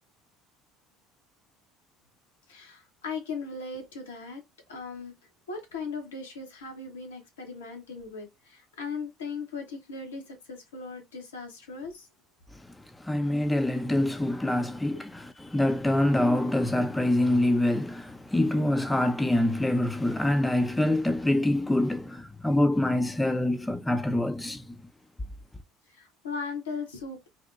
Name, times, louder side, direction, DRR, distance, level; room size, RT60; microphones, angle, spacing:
voice 1, 2.5-4.4 4.7-5.1 5.5-12.1 25.9-27.3, left 4 dB, 85° left, 0.7 m, -38 dB
voice 2, 12.5-24.7, left 1 dB, 10° left, 0.3 m, -25 dB
2.6 x 2.0 x 2.3 m
hypercardioid pair, 65°, 0 cm